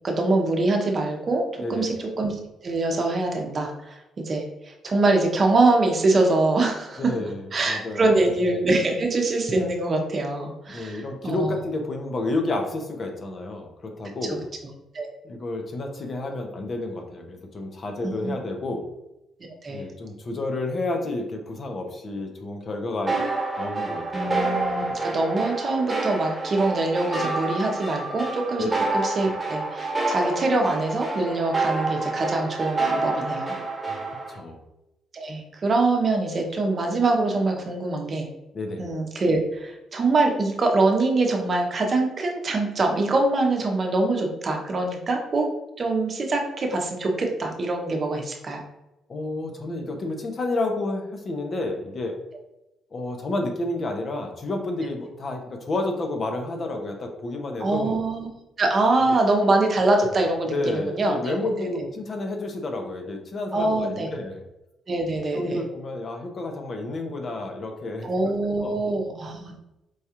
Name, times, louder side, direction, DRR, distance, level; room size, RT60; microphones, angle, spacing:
voice 1, 0.0-2.4 2.6-4.0 4.2-7.1 7.5-11.6 14.9-15.1 18.0-18.3 19.6-19.8 24.1-28.6 28.9-33.5 35.1-38.3 38.8-45.5 45.8-48.6 57.6-58.3 58.6-61.3 63.5-64.1 64.9-65.6 68.0-69.6, right 2 dB, 40° right, 2 dB, 0.7 m, -24 dB
voice 2, 1.6-1.9 7.0-8.2 10.7-14.5 15.2-18.9 19.7-23.3 23.6-24.3 28.6-28.7 33.9-34.0 34.4-34.6 38.5-38.8 49.1-52.2 52.9-58.0 59.1-59.2 60.4-64.4 65.3-68.3 68.6-68.8, left 2 dB, 45° left, 4 dB, 0.6 m, -30 dB
sound 1, 23.1-34.4, right 3 dB, 20° right, 1.2 m, -28 dB
4.7 x 2.3 x 2.8 m, 0.93 s
cardioid pair, 90°, 0 cm